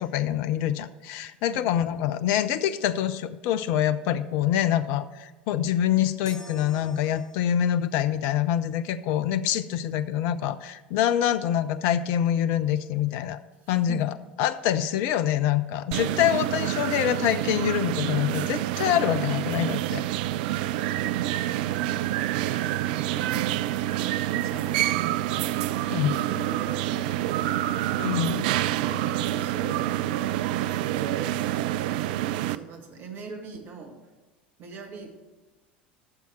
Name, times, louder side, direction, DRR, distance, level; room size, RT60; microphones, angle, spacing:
voice 1, 0.0-13.4 13.7-14.1 14.4-20.0 25.9-26.1 28.0-28.4, left 11 dB, 50° left, 13 dB, 0.5 m, -25 dB
sound 1, 6.3-7.8, left 1 dB, 15° left, 2.0 m, -46 dB
voice 2, 13.6-14.1 20.8-22.4 22.7-27.8 28.1-28.2 28.8-32.0 32.5-34.0 34.6-35.1, right 4 dB, 40° right, 3 dB, 1.9 m, -42 dB
sound 2, 15.9-32.6, right 14 dB, 60° right, 0.3 m, -27 dB
13.0 x 7.1 x 4.5 m, 1.2 s
figure-of-eight pair, 75°, 5 cm